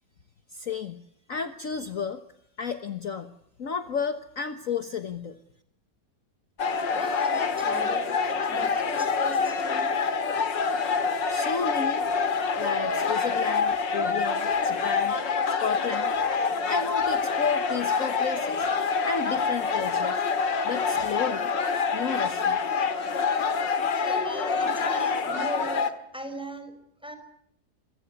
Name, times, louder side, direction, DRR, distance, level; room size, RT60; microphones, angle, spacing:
voice 1, 0.5-1.0 1.3-2.2 2.6-3.3 3.6-5.4 11.3-12.1 12.6-15.2 15.6-16.1 16.7-18.7 19.0-20.2 20.6-21.5 21.9-22.6, left 6 dB, 50° left, 9 dB, 1.6 m, -32 dB
sound 1, 6.6-25.9, left 5 dB, 80° left, 2.5 m, -26 dB
voice 2, 6.9-10.0 23.9-25.9 26.1-26.8 27.0-27.2, right 1 dB, 5° right, 8 dB, 5.0 m, -38 dB
26.5 x 22.0 x 8.4 m, 0.70 s
omnidirectional pair, 1.9 m